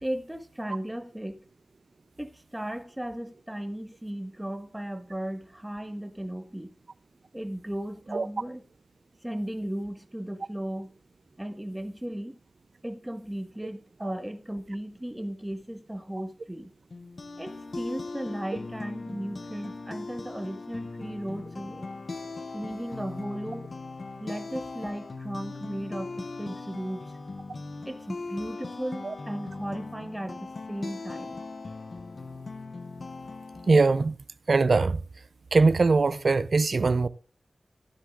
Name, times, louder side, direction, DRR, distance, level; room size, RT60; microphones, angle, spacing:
voice 1, 0.0-1.4 2.2-6.7 7.3-8.6 9.2-10.9 11.4-12.4 12.8-16.7 17.4-21.9 22.5-23.7 24.2-27.1 27.8-31.4, right 1 dB, 10° right, 1.4 m, -36 dB
sound 1, 16.9-33.8, left 3 dB, 55° left, 0.7 m, -39 dB
voice 2, 33.7-34.2 34.5-35.0 35.5-37.1, right 3 dB, 55° right, 0.5 m, -21 dB
15.5 x 10.0 x 2.4 m
wide cardioid pair, 105°, 0 cm